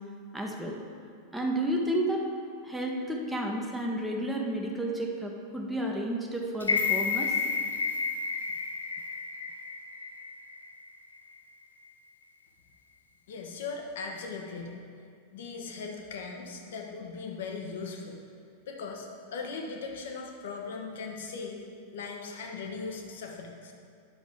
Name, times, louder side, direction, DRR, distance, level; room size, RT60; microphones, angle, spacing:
voice 1, 0.3-0.8 1.3-2.2 2.6-7.3, right 1 dB, 5° right, -1 dB, 0.9 m, -31 dB
sound 1, 6.6-10.7 11.1-11.2, left 5 dB, 75° left, 0.5 m, -31 dB
voice 2, 13.3-14.8 15.3-18.2 18.7-21.6 21.9-23.7, left 4 dB, 60° left, 2 dB, 1.0 m, -39 dB
9.6 x 6.2 x 3.5 m, 2.2 s
figure-of-eight pair, 90°, 0 cm